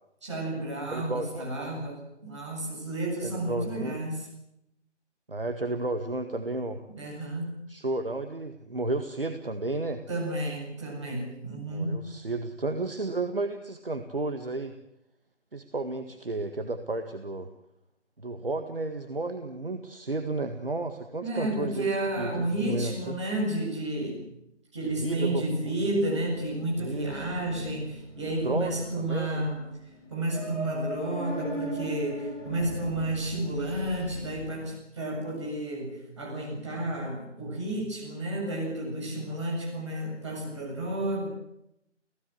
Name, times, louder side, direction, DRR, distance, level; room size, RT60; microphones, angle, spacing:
voice 1, 0.2-4.3 7.0-7.5 10.1-12.0 21.2-24.2 24.7-29.6 30.1-41.3, right 1 dB, 25° right, -1 dB, 7.8 m, -31 dB
voice 2, 0.9-1.5 3.2-4.0 5.3-6.8 7.7-10.0 11.7-14.7 15.5-17.5 18.2-21.9 22.2-23.2 24.8-25.7 26.8-27.3 28.4-29.4, right 2 dB, 50° right, 7 dB, 1.8 m, -32 dB
sound 1, 26.3-34.5, right 1 dB, 20° left, 6.3 m, -39 dB
30.0 x 17.0 x 8.0 m, 0.81 s
figure-of-eight pair, 165°, 36 cm